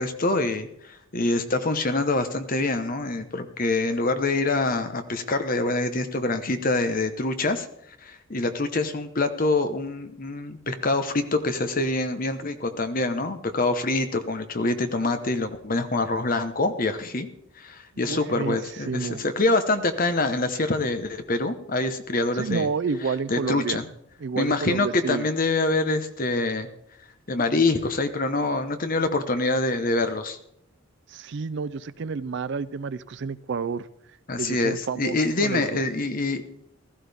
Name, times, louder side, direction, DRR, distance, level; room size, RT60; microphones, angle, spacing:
voice 1, 0.0-7.7 8.0-17.3 17.6-22.7 23.3-23.8 24.4-26.7 27.3-30.4 34.3-36.4, left 2 dB, 40° left, 9 dB, 1.0 m, -25 dB
voice 2, 18.0-19.2 22.3-23.8 24.2-25.3 31.1-33.9 34.4-35.8, right 5 dB, 55° right, 15 dB, 0.4 m, -30 dB
16.0 x 13.5 x 3.5 m, 0.74 s
head